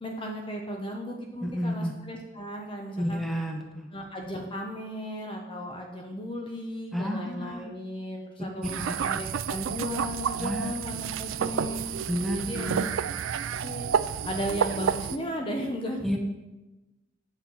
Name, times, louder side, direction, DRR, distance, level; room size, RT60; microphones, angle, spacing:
voice 1, 0.0-3.2 3.9-11.8 12.3-13.1 13.4-13.9 14.2-16.2, equal, 25° left, 1 dB, 0.9 m, -35 dB
voice 2, 1.4-1.9 3.0-3.9 6.9-7.7 10.4-10.7 11.0-11.1 12.1-12.8 16.0-16.2, equal, ahead, 1 dB, 1.1 m, -30 dB
sound 1, 8.6-15.2, right 7 dB, 75° right, 0.4 m, -30 dB
8.6 x 4.3 x 7.2 m, 1.1 s
head